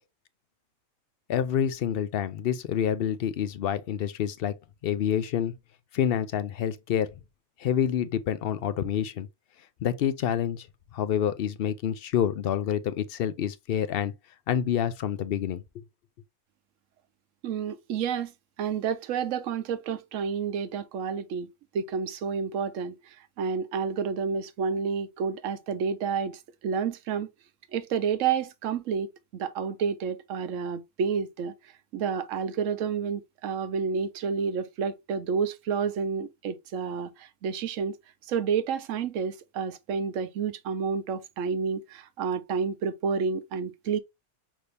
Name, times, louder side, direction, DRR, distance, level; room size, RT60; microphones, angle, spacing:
voice 1, 1.3-4.5 4.8-5.5 5.9-7.1 7.6-9.3 9.8-10.7 10.9-14.1 14.5-15.8, left 9 dB, 65° left, 0.6 m, -27 dB
voice 2, 17.4-18.3 18.6-21.5 21.7-23.0 23.4-27.3 27.7-29.1 29.3-31.5 31.9-38.0 38.3-44.0, right 6 dB, 70° right, 1.0 m, -30 dB
6.0 x 2.7 x 3.3 m
omnidirectional pair, 1.5 m